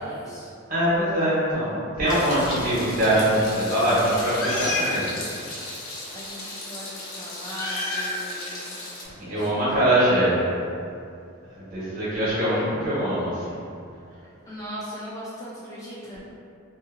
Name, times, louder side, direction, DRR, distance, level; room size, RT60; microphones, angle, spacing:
voice 1, 0.0-0.5 6.1-8.8 9.2-9.9 14.4-16.2, equal, 15° left, -8 dB, 0.3 m, -39 dB
voice 2, 0.7-5.0 9.3-10.4 11.7-13.3, right 1 dB, 45° right, -11 dB, 1.2 m, -22 dB
Meow, 2.1-9.0, left 2 dB, 85° left, 0.6 m, -33 dB
2.6 x 2.6 x 2.5 m, 2.4 s
head